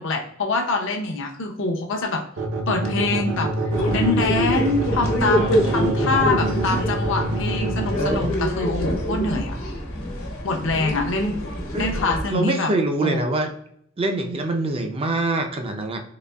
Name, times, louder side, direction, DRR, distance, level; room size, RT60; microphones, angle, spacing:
voice 1, 0.0-2.2 2.7-3.5 3.9-9.6 10.4-11.4 11.8-12.7 13.0-13.3, left 3 dB, 65° left, 1 dB, 0.7 m, -25 dB
sound 1, 2.4-7.9, right 2 dB, 65° right, 0.7 m, -25 dB
sound 2, 3.7-12.2, equal, 85° left, 1.2 m, -26 dB
voice 2, 5.3-6.3 8.0-8.3 11.7-11.9 12.3-13.5 14.0-16.0, right 2 dB, 25° right, 5 dB, 0.4 m, -25 dB
4.0 x 3.1 x 2.2 m, 0.70 s
head